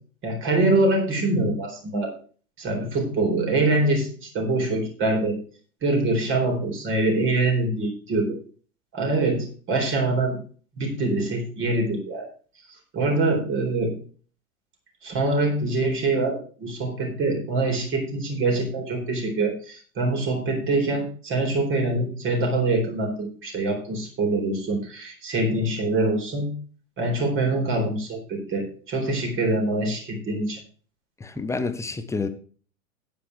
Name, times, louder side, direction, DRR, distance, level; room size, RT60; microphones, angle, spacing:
voice 1, 0.2-2.1 2.6-5.4 5.8-8.4 8.9-10.4 10.8-12.3 12.9-13.9 15.0-26.5 27.0-30.6, right 2 dB, 30° right, 1 dB, 4.0 m, -24 dB
voice 2, 31.2-32.3, left 4 dB, 5° left, 11 dB, 0.7 m, -28 dB
9.3 x 9.1 x 4.6 m, 0.40 s
figure-of-eight pair, 95°, 43 cm